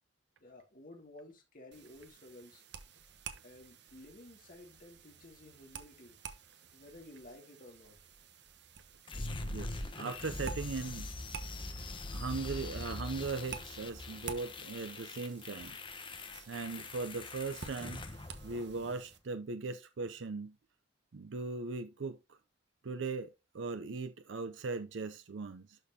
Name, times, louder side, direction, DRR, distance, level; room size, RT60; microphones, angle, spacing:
voice 1, 0.4-2.7 3.4-6.2 6.7-8.0, left 1 dB, 50° left, 2.1 m, -54 dB
sound 1, 1.7-19.2, right 6 dB, 65° right, 1.2 m, -51 dB
sound 2, 9.1-19.0, left 2 dB, 30° left, 1.0 m, -43 dB
voice 2, 9.5-11.1 12.1-15.8 16.2-18.0 18.4-20.6 21.1-22.4 22.8-25.8, right 4 dB, 80° right, 0.5 m, -39 dB
12.0 x 4.2 x 2.8 m
head